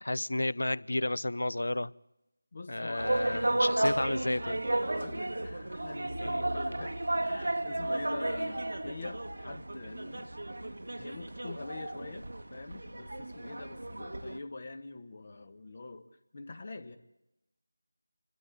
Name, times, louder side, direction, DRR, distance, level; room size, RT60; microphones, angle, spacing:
voice 1, 0.0-1.9 2.7-4.6 6.2-6.4, left 1 dB, 60° left, 20 dB, 0.7 m, -32 dB
voice 2, 2.5-3.9 4.9-10.3 10.6-10.7 11.0-12.3 12.5-16.1 16.3-17.0, left 3 dB, 35° left, 9 dB, 1.3 m, -45 dB
sound 1, 3.0-14.4, right 1 dB, 60° right, 1.3 m, -33 dB
29.0 x 13.0 x 8.6 m, 0.93 s
figure-of-eight pair, 165°, 0 cm